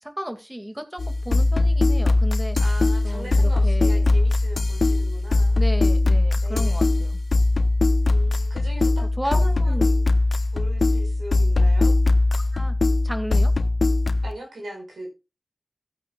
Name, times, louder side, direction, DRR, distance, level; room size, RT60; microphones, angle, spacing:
voice 1, 0.0-2.6 3.0-4.0 5.6-7.2 9.2-9.9 11.8-11.9 12.5-12.8 13.0-13.5, equal, 10° right, 6 dB, 2.2 m, -33 dB
sound 1, 1.0-14.3, left 2 dB, 65° left, 0.8 m, -20 dB
voice 2, 2.6-5.6 6.4-6.8 8.1-10.0 10.5-12.0 14.2-15.1, right 1 dB, 80° right, 2 dB, 5.3 m, -39 dB
17.5 x 9.0 x 2.4 m, 0.28 s
cardioid pair, 40°, 0 cm